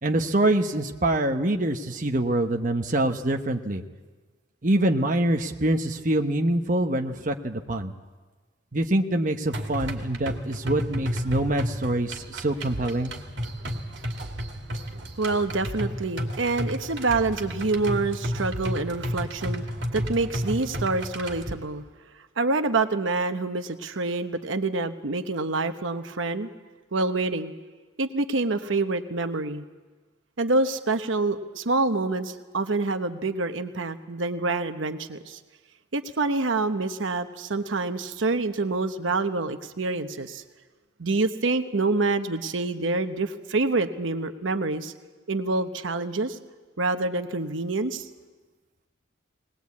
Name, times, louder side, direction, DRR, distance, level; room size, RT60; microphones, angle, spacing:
voice 1, 0.0-3.8 4.6-7.9 8.7-13.1, right 1 dB, 45° right, 4 dB, 1.0 m, -25 dB
sound 1, 9.5-21.5, equal, 65° right, 2.4 m, -32 dB
voice 2, 15.2-21.8 22.4-26.5 26.9-27.5 28.0-29.6 30.4-35.4 35.9-40.4 41.0-44.9 45.3-46.4 46.8-48.0, right 3 dB, 90° right, 8 dB, 1.0 m, -27 dB
20.0 x 19.5 x 8.5 m, 1.3 s
head